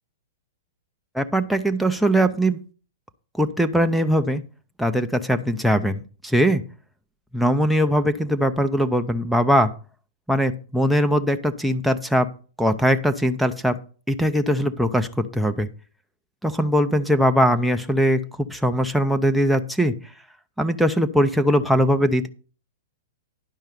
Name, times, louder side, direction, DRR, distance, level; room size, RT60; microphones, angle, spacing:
voice 1, 1.1-2.6 3.4-4.4 4.8-6.6 7.3-9.7 10.3-12.3 12.6-13.8 14.1-15.7 16.4-18.2 18.5-19.9 20.6-22.3, equal, ahead, 8 dB, 0.7 m, -21 dB
10.5 x 5.5 x 5.0 m, 0.37 s
hypercardioid pair, 105°, 0 cm